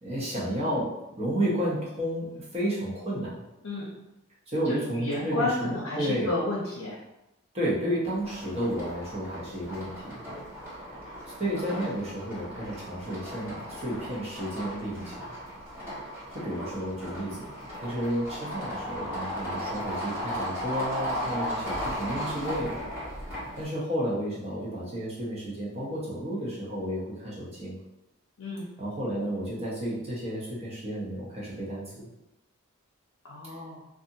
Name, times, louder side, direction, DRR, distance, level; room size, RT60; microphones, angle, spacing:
voice 1, 0.0-3.4 4.5-6.3 7.5-10.2 11.4-15.3 16.4-22.9 23.6-27.8 28.8-32.1, equal, 30° right, -6 dB, 0.7 m, -32 dB
voice 2, 4.6-7.0 28.4-28.7 33.2-33.8, left 2 dB, 70° left, -5 dB, 0.6 m, -31 dB
sound 1, 8.0-23.7, equal, 10° right, 1.4 m, -36 dB
2.6 x 2.4 x 2.7 m, 0.93 s
head